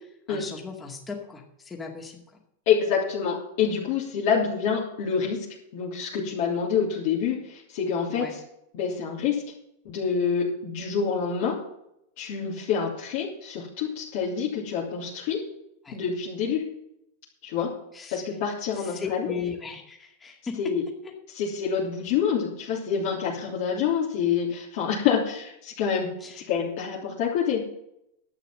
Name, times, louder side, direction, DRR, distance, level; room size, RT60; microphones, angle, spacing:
voice 1, 0.3-2.2 8.1-8.3 15.8-16.0 17.9-18.2 18.8-20.7 26.2-26.4, left 5 dB, 15° left, 1 dB, 2.1 m, -36 dB
voice 2, 2.7-5.4 5.7-8.4 8.7-9.4 9.8-11.6 12.2-15.4 15.9-16.6 17.4-17.7 18.1-19.3 20.6-20.8 21.3-27.6, left 7 dB, 55° left, -4 dB, 3.1 m, -27 dB
11.0 x 8.5 x 7.5 m, 0.79 s
supercardioid pair, 145°, 0 cm